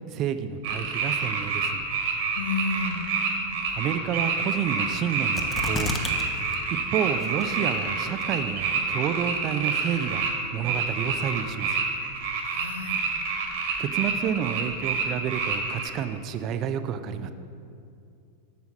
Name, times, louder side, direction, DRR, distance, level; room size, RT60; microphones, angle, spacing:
voice 1, 0.1-1.9 3.7-6.3 6.9-10.2 10.5-11.8 13.8-17.3, right 8 dB, 35° right, 11 dB, 0.5 m, -30 dB
sound 1, 0.6-10.3 10.6-15.9, right 5 dB, 50° right, 1.6 m, -28 dB
voice 2, 2.3-3.1 12.4-13.0, left 3 dB, 65° left, 4 dB, 1.0 m, -31 dB
sound 2, 5.3-6.2 6.5-6.6 7.2-7.7 8.2-8.3, left 4 dB, 15° left, 0.9 m, -30 dB
8.2 x 7.0 x 6.3 m, 2.5 s
figure-of-eight pair, 90°, 0 cm